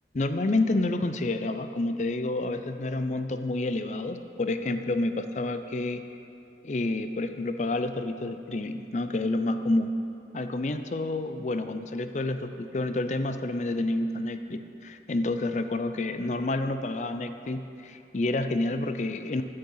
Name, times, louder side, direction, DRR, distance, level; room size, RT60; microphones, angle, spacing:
voice 1, 0.1-6.0 6.6-9.9 10.3-19.4, left 2 dB, 40° left, 9 dB, 0.5 m, -29 dB
13.0 x 6.7 x 5.6 m, 2.6 s
head